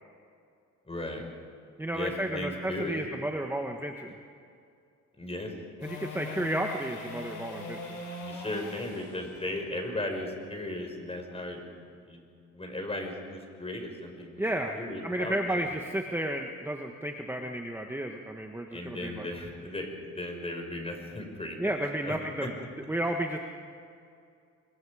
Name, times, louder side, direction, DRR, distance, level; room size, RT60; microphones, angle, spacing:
voice 1, 0.8-1.3 1.9-3.0 5.2-5.5 6.0-6.1 6.3-6.5 8.2-11.6 12.1-12.2 12.5-14.4 14.7-15.7 18.7-21.8 22.0-22.5, left 1 dB, 20° left, 3 dB, 5.3 m, -36 dB
voice 2, 1.8-4.1 5.8-8.0 14.4-19.3 21.6-22.5 22.9-23.4, right 1 dB, 5° right, 3 dB, 1.5 m, -32 dB
sound 1, 5.8-11.9 18.5-18.6, left 2 dB, 80° left, 7.0 m, -42 dB
25.5 x 23.5 x 5.0 m, 2.3 s
cardioid pair, 90°, 30 cm